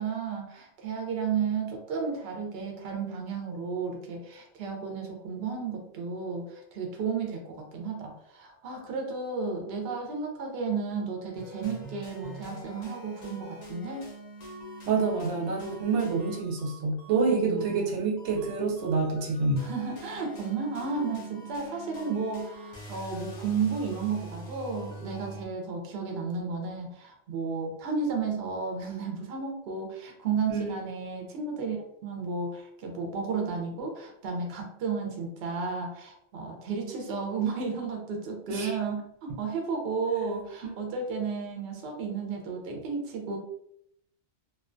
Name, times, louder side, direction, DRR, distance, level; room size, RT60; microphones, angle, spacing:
voice 1, 0.0-14.1 17.3-17.9 19.6-43.4, right 5 dB, 65° right, 2 dB, 0.8 m, -33 dB
sound 1, 11.4-25.5, right 1 dB, 50° left, 0.6 m, -44 dB
voice 2, 14.9-19.7 30.5-30.9 38.5-38.8, right 4 dB, 90° right, 0 dB, 0.9 m, -27 dB
2.4 x 2.2 x 2.4 m, 0.74 s
omnidirectional pair, 1.2 m